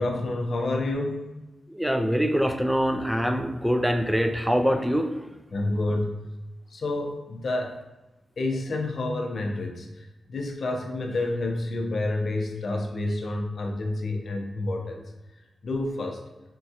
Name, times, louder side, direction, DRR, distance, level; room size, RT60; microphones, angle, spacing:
voice 1, 0.0-1.5 5.5-6.2 6.7-7.8 8.4-15.0 15.6-16.2, left 2 dB, 65° left, 2 dB, 0.6 m, -29 dB
voice 2, 1.7-5.3, equal, 5° right, 6 dB, 0.3 m, -24 dB
4.4 x 2.3 x 2.8 m, 1.1 s
cardioid pair, 75°, 0 cm